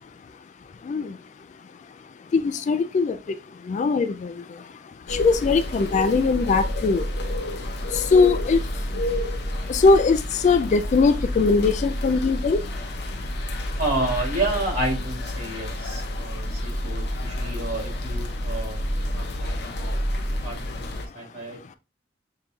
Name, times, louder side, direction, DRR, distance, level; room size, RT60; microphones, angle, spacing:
voice 1, 2.3-3.2 3.7-4.3 5.2-7.1 8.1-8.6 9.7-12.6, left 4 dB, 40° left, 0.3 m, -20 dB
sound 1, 5.1-21.1, left 1 dB, 65° left, 0.7 m, -29 dB
voice 2, 13.8-18.8 19.1-20.0 20.4-21.6, right 2 dB, 55° right, 2.6 m, -30 dB
6.7 x 2.8 x 2.3 m
head